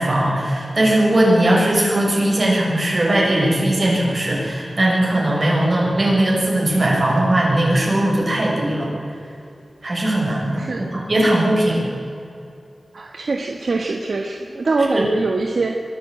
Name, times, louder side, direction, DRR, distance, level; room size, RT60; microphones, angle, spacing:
voice 1, 0.0-8.9 9.8-11.9 15.0-15.1, right 1 dB, 45° right, -2 dB, 7.1 m, -19 dB
voice 2, 10.5-11.0 12.9-15.8, right 3 dB, 70° right, 3 dB, 1.5 m, -23 dB
22.5 x 14.0 x 8.9 m, 2.6 s
wide cardioid pair, 105°, 0 cm